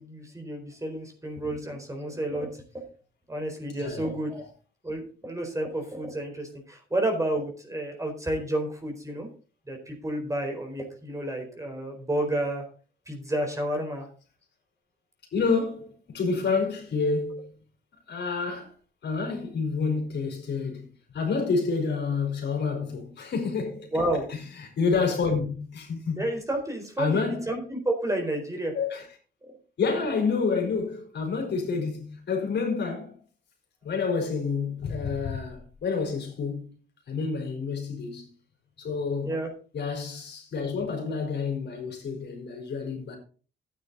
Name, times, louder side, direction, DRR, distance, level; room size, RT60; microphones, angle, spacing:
voice 1, 0.0-2.5 3.3-4.5 4.8-9.3 9.7-12.6 13.1-14.1 23.9-24.3 26.2-28.7 29.4-29.5 39.2-39.5, right 1 dB, 15° right, 4.3 m, -30 dB
voice 2, 15.3-17.5 18.1-18.7 19.0-20.9 21.1-23.9 24.3-26.3 27.0-27.5 28.7-29.1 29.8-33.2 33.8-36.7 37.1-38.3 38.8-39.4 39.7-43.2, left 4 dB, 60° left, 4.6 m, -28 dB
12.5 x 9.4 x 4.1 m
cardioid pair, 90°, 20 cm